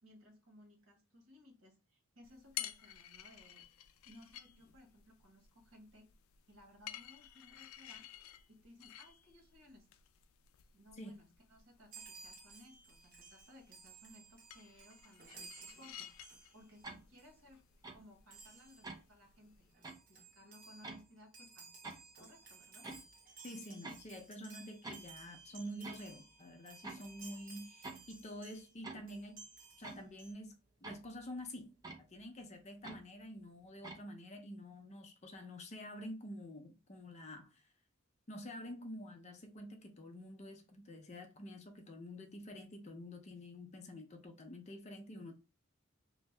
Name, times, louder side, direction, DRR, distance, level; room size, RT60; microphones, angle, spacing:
voice 1, 0.0-3.6 4.0-6.1 6.5-9.9 10.7-16.1 16.5-17.6 17.9-19.7 20.1-22.9, left 1 dB, 85° right, 1.3 m, -61 dB
sound 1, 2.2-19.7, left 12 dB, 85° left, 0.3 m, -53 dB
Chime, 11.9-16.9 17.2-17.4 18.3-18.9 19.5-19.6 19.7-28.7 29.1-30.3, right 4 dB, 40° right, 0.9 m, -56 dB
sound 2, 16.8-17.0 17.8-18.0 18.8-19.0 19.8-20.0 20.8-21.0 21.8-22.0 22.8-23.1 23.8-24.0 24.8-25.2 25.8-26.1 26.8-27.2 27.8-28.1 28.8-29.2 29.8-30.1 30.8-31.2 31.8-32.0 32.8-33.0 33.8-34.0, right 3 dB, 20° right, 0.4 m, -48 dB
voice 2, 23.4-29.4 29.8-30.5 30.8-37.6 38.3-45.4, equal, 35° left, 0.5 m, -48 dB
2.7 x 2.1 x 3.2 m
head